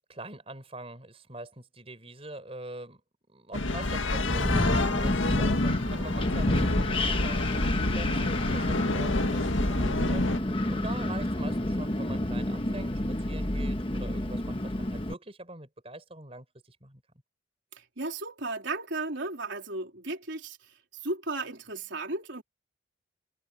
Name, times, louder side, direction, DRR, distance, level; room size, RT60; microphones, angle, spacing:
voice 1, 0.1-3.0 3.3-17.0, right 2 dB, 30° right, 4.9 m, -44 dB
sound 1, 3.5-10.4, left 2 dB, 80° left, 1.9 m, -28 dB
Wind, 4.1-15.1, left 1 dB, 25° left, 1.3 m, -30 dB
voice 2, 17.7-22.4, right 2 dB, 70° right, 3.5 m, -35 dB
head